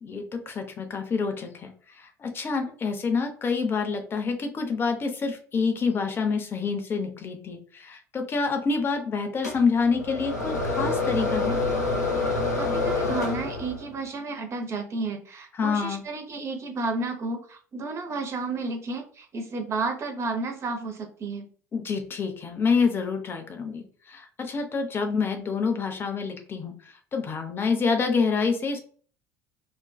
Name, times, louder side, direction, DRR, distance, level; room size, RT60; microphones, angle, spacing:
voice 1, 0.0-11.6 15.5-16.0 21.7-28.8, left 5 dB, 25° left, 5 dB, 0.5 m, -27 dB
sound 1, 9.4-13.9, left 3 dB, 80° left, 0.5 m, -27 dB
voice 2, 12.6-21.5, right 3 dB, 35° right, 4 dB, 0.6 m, -32 dB
2.5 x 2.2 x 2.2 m, 0.43 s
figure-of-eight pair, 65°, 9 cm